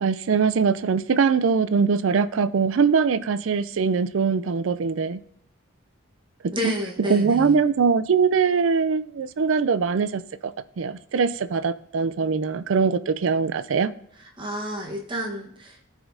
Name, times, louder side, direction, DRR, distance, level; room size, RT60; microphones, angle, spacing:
voice 1, 0.0-5.2 6.6-6.7 7.0-13.9, right 5 dB, 70° right, 0.4 m, -22 dB
voice 2, 6.5-7.5 14.4-15.9, equal, 25° right, 1.2 m, -30 dB
14.5 x 5.0 x 2.7 m
head